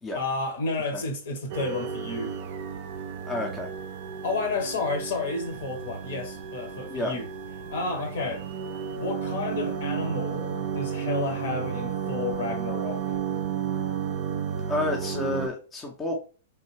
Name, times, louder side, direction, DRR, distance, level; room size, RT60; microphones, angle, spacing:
voice 1, 0.1-2.3 4.2-7.3 7.7-8.4 9.0-13.2, left 3 dB, 60° left, 1.1 m, -31 dB
sound 1, 1.5-15.5, right 7 dB, 50° right, 0.4 m, -33 dB
voice 2, 3.3-3.7 6.9-7.1 14.7-16.1, left 2 dB, 15° left, 0.6 m, -30 dB
3.3 x 2.2 x 3.2 m
figure-of-eight pair, 105°, 0 cm